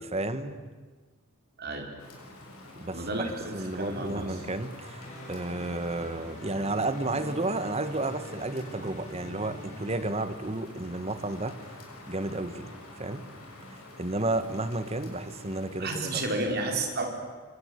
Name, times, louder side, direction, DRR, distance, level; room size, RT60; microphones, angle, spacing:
voice 1, 0.1-0.6 2.7-11.6 12.1-13.3 13.7-16.2, right 2 dB, 30° right, 11 dB, 1.4 m, -32 dB
Rain, 2.0-16.4, left 2 dB, 80° left, 6.9 m, -48 dB
voice 2, 2.9-4.3 15.8-17.0, right 2 dB, 45° right, 2 dB, 4.9 m, -31 dB
sound 1, 5.0-10.1, equal, 35° left, 6.2 m, -44 dB
28.0 x 25.0 x 8.2 m, 1.4 s
head